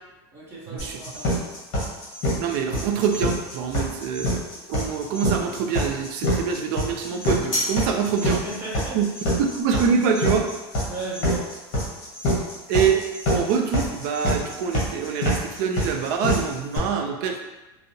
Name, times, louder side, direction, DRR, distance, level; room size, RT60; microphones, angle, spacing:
voice 1, 0.3-1.5 3.7-3.9 8.2-9.3 10.8-11.5, right 2 dB, 20° right, -7 dB, 0.8 m, -37 dB
sound 1, 0.8-16.8, equal, 45° left, 1.0 m, -25 dB
voice 2, 2.4-8.4 8.9-9.0 9.4-10.5 12.3-12.4 12.7-17.4, right 6 dB, 60° right, 4 dB, 0.4 m, -25 dB
2.6 x 2.0 x 2.6 m, 1.1 s
supercardioid pair, 150°, 14 cm